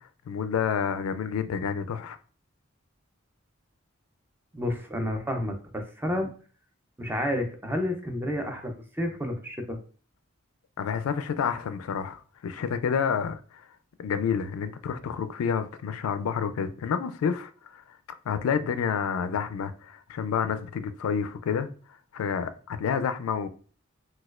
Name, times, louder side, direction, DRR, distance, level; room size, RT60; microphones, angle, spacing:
voice 1, 0.3-2.2 10.8-13.4 14.0-17.8 18.3-21.7 22.1-23.5, left 7 dB, 80° left, 0.3 m, -29 dB
voice 2, 4.5-6.3 7.0-9.8, left 1 dB, 10° right, 0.4 m, -30 dB
4.1 x 2.3 x 2.3 m
head